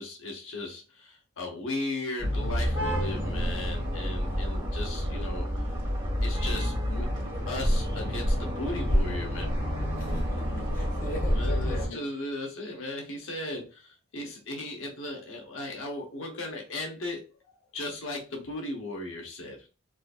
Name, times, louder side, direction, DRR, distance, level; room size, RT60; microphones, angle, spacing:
voice 1, 0.0-5.5 6.2-7.2 7.5-9.6 11.2-19.7, left 2 dB, 70° left, 0.9 m, -37 dB
sound 1, 2.2-11.9, equal, 20° right, 1.4 m, -28 dB
voice 2, 10.0-12.0, left 1 dB, 40° left, 0.8 m, -39 dB
3.8 x 2.5 x 2.4 m
head